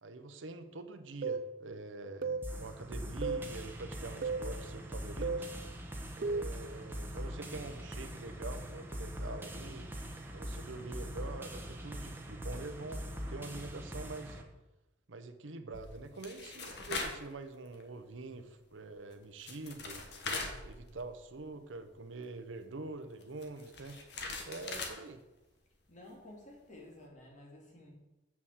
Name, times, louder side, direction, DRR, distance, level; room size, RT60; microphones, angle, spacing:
voice 1, 0.0-5.5 6.2-9.9 10.3-14.4 15.1-20.1 20.6-24.0 24.5-25.2, right 3 dB, 80° right, 9 dB, 0.9 m, -45 dB
sound 1, 1.2-1.5 2.2-2.5 3.2-3.5 4.2-4.5 5.2-5.5 6.2-6.5, right 4 dB, 50° right, 0.4 m, -34 dB
sound 2, 2.4-14.4, equal, 10° right, 1.1 m, -42 dB
sound 3, 15.7-17.3 17.7-17.8 19.1-19.2 19.4-21.3 21.5-21.6 23.2-25.0, left 3 dB, 60° left, 1.5 m, -41 dB
voice 2, 25.9-27.9, left 1 dB, 40° left, -1 dB, 2.4 m, -53 dB
7.2 x 6.5 x 7.4 m, 1.0 s
head